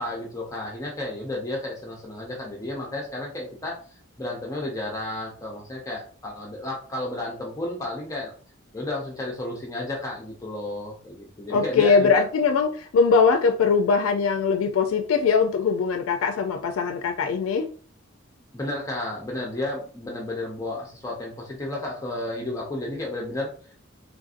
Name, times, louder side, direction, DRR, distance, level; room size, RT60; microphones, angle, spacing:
voice 1, 0.0-3.7 4.2-8.3 8.7-12.2 18.5-23.5, left 1 dB, 15° left, 0.5 m, -32 dB
voice 2, 11.5-17.7, left 5 dB, 85° left, 0.3 m, -21 dB
3.4 x 2.5 x 2.4 m
head